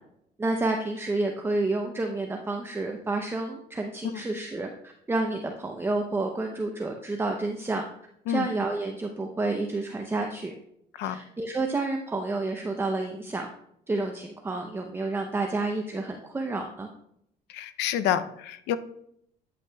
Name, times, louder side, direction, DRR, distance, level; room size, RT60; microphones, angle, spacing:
voice 1, 0.4-7.8 8.3-10.5 11.0-13.5 13.9-16.9, right 2 dB, 15° right, 3 dB, 0.6 m, -30 dB
voice 2, 17.5-18.8, left 10 dB, 85° left, 12 dB, 0.5 m, -28 dB
9.1 x 8.4 x 2.3 m, 0.74 s
cardioid pair, 110°, 17 cm